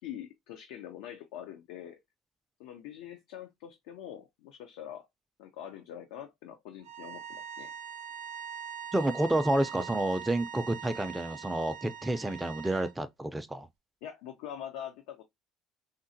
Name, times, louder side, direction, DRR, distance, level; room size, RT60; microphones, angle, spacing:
voice 1, 0.0-2.0 2.6-5.1 5.4-7.7 14.0-15.2, left 10 dB, 85° left, 0.4 m, -44 dB
sound 1, 6.8-12.9, right 8 dB, 90° right, 0.5 m, -42 dB
voice 2, 8.9-13.7, right 1 dB, 10° right, 0.4 m, -29 dB
3.7 x 2.1 x 2.5 m
supercardioid pair, 90°, 0 cm